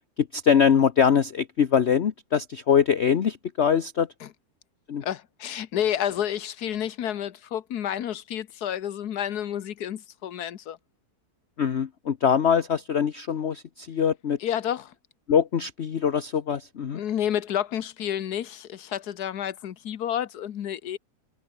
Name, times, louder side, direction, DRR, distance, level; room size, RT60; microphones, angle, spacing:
voice 1, 0.2-4.1 4.9-5.0 11.6-14.4 15.3-17.0, left 7 dB, 45° left, 1.1 m, -23 dB
voice 2, 5.0-10.8 14.4-14.9 16.9-21.0, left 10 dB, 75° left, 1.5 m, -30 dB
omnidirectional pair, 1.7 m